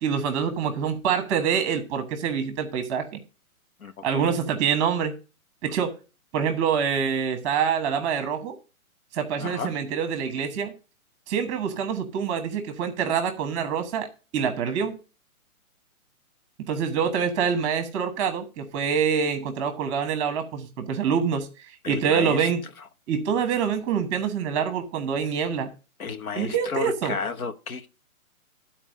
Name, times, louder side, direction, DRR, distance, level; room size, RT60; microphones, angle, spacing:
voice 1, 0.0-3.2 4.0-5.1 5.6-5.9 6.3-8.6 9.1-10.7 11.3-14.1 14.3-15.0 16.6-21.5 21.9-22.6 23.1-25.7 26.3-27.2, right 7 dB, 20° right, 1.3 m, -26 dB
voice 2, 3.8-4.3 9.4-9.7 21.8-22.5 26.0-27.9, left 5 dB, 75° left, 1.3 m, -33 dB
11.0 x 4.5 x 6.3 m
hypercardioid pair, 155°, 43 cm